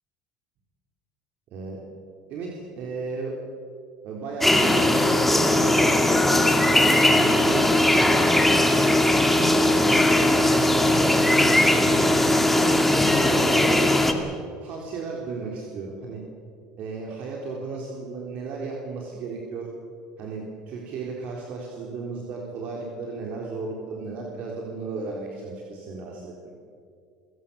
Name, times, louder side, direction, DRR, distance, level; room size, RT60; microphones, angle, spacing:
voice 1, 2.3-3.3 4.0-7.7 8.1-8.6 9.4-10.8 11.5-14.0 14.6-16.2 16.8-19.7 20.2-26.3, right 4 dB, 55° right, -1 dB, 4.1 m, -34 dB
sound 1, 4.4-14.1, left 1 dB, 5° left, 2.4 m, -19 dB
29.0 x 17.5 x 7.1 m, 2.3 s
supercardioid pair, 105°, 3 cm